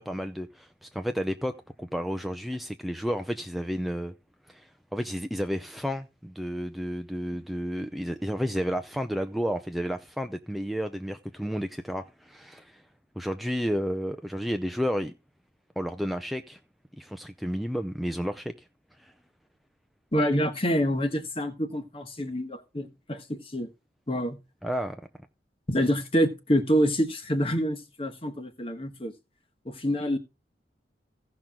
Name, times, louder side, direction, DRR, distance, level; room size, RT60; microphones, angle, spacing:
voice 1, 0.0-4.1 4.5-12.8 13.2-15.1 15.8-16.6 17.0-18.5 19.0-19.1 24.6-25.0, equal, ahead, 0.5 m, -31 dB
voice 2, 20.1-23.7 24.1-24.4 25.7-29.1 29.6-30.2, equal, 30° left, 1.4 m, -27 dB
16.0 x 6.0 x 3.7 m
head